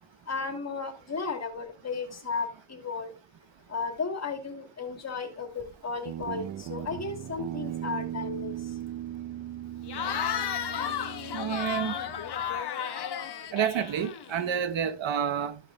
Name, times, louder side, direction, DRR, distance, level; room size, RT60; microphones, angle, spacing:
voice 1, 0.3-3.1 3.7-8.5, left 4 dB, 35° left, 2.6 m, -34 dB
Guitar, 6.0-12.6, right 12 dB, 45° right, 0.5 m, -38 dB
Cheering / Crowd, 9.9-14.5, left 8 dB, 60° left, 1.4 m, -33 dB
voice 2, 11.3-11.9 13.5-15.6, right 8 dB, 70° right, 1.2 m, -29 dB
13.5 x 5.3 x 3.6 m
cardioid pair, 110°, 46 cm